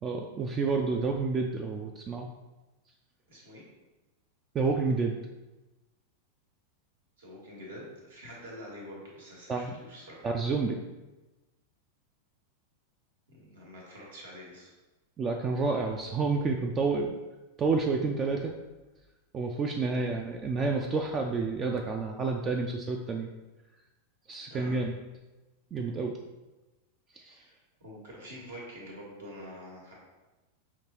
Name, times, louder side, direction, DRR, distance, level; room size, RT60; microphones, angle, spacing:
voice 1, 0.0-2.3 4.5-5.2 9.5-9.7 10.2-10.8 15.2-17.1 17.6-18.5 19.3-23.3 24.3-24.9 25.7-26.1 27.2-27.4, right 4 dB, 25° right, 3 dB, 0.3 m, -29 dB
voice 2, 3.3-3.6 7.2-10.3 13.3-14.7 19.9-20.1 24.5-24.8 27.2-27.5 27.8-29.9, equal, 65° right, -3 dB, 1.4 m, -46 dB
5.7 x 3.0 x 2.9 m, 1.1 s
figure-of-eight pair, 90°, 0 cm